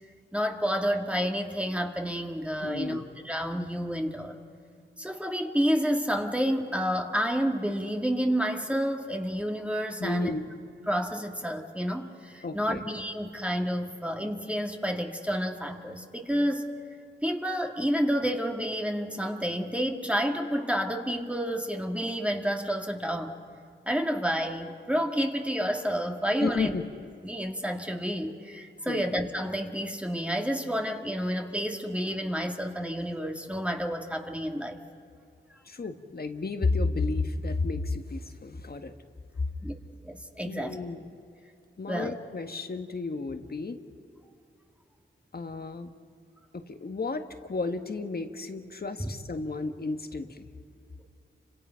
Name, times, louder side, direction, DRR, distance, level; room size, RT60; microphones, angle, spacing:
voice 1, 0.3-4.4 5.0-10.3 10.8-16.7 17.2-23.4 23.9-26.7 27.2-34.8 39.6-39.7 40.0-40.8 41.9-42.1 49.0-49.1, equal, 5° right, 3 dB, 2.1 m, -29 dB
voice 2, 2.6-3.1 10.0-10.4 12.4-12.8 26.4-26.8 28.9-29.0 35.6-38.9 40.4-41.1 41.8-43.8 45.3-45.9 46.5-50.5, left 3 dB, 50° left, 7 dB, 1.7 m, -32 dB
30.0 x 26.0 x 5.8 m, 2.5 s
cardioid pair, 70°, 21 cm